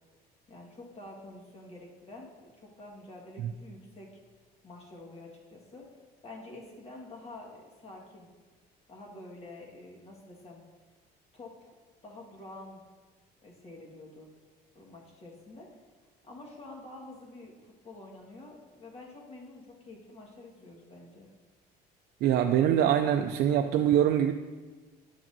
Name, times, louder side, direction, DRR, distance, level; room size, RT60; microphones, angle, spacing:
voice 1, 0.5-4.1 4.6-6.0 6.2-8.3 8.9-10.6 11.3-11.7 12.0-12.8 13.4-14.3 14.7-15.7 16.2-21.3, left 2 dB, 35° left, -1 dB, 1.6 m, -48 dB
voice 2, 22.2-24.3, right 10 dB, 70° right, 5 dB, 0.4 m, -24 dB
10.5 x 6.0 x 2.7 m, 1.3 s
cardioid pair, 110°, 17 cm